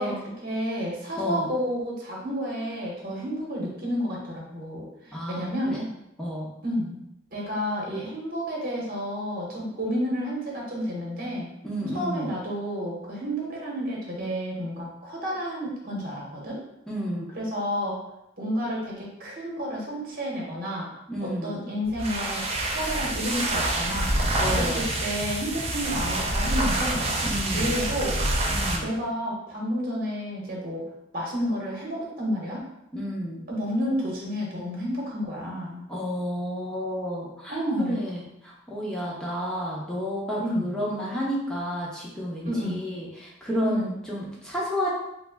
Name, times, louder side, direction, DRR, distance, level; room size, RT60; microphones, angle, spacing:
voice 1, 0.0-5.8 6.6-7.0 7.3-11.5 11.9-16.6 17.3-18.0 18.4-20.9 21.2-24.1 24.5-27.0 27.5-28.2 28.8-30.9 31.1-32.7 33.5-35.8 37.5-38.0 40.4-40.8 42.4-42.8 43.6-43.9, equal, 50° right, -3 dB, 1.0 m, -30 dB
voice 2, 1.2-1.5 5.1-5.5 5.7-5.9 6.2-6.5 11.6-12.3 16.9-17.3 21.1-21.5 24.4-24.8 27.2-27.7 28.5-28.9 32.9-33.4 35.9-44.9, equal, 5° left, -6 dB, 0.7 m, -31 dB
sound 1, 21.8-28.9, right 1 dB, 30° right, 0.5 m, -27 dB
3.5 x 2.1 x 3.5 m, 0.84 s
head